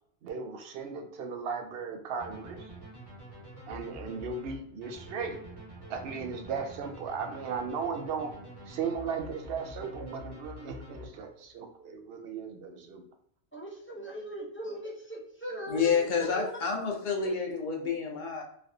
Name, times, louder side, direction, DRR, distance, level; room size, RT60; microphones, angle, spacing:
voice 1, 0.2-2.7 3.7-5.4 5.9-8.3 8.6-13.1, right 5 dB, 70° right, 5 dB, 0.8 m, -36 dB
sound 1, 2.2-11.5, left 1 dB, 25° right, 1.0 m, -47 dB
voice 2, 13.5-16.5, right 1 dB, 15° left, -4 dB, 0.6 m, -39 dB
voice 3, 15.7-18.4, left 6 dB, 55° left, 0 dB, 0.7 m, -29 dB
3.2 x 2.5 x 2.6 m, 0.69 s
omnidirectional pair, 1.1 m